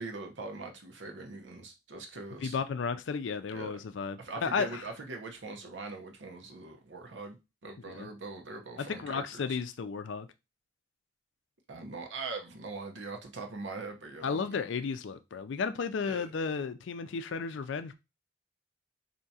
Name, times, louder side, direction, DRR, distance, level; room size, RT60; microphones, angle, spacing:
voice 1, 0.0-2.6 3.5-3.8 4.2-7.4 7.6-9.6 11.7-14.6 16.0-16.3, right 3 dB, 75° right, 0.8 m, -42 dB
voice 2, 2.4-4.8 7.9-8.1 8.8-10.3 14.2-17.9, left 5 dB, 75° left, 0.4 m, -33 dB
4.6 x 2.8 x 2.7 m
head